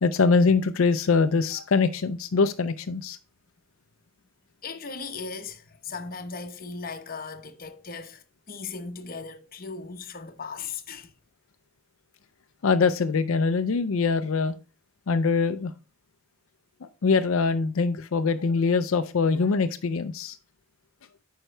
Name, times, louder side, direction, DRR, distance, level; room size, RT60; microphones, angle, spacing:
voice 1, 0.0-3.2 12.6-14.5 15.1-15.7 16.8-20.4, left 4 dB, 80° left, 0.5 m, -23 dB
voice 2, 4.6-11.1, left 4 dB, 45° left, 1.0 m, -37 dB
9.0 x 5.6 x 3.3 m
head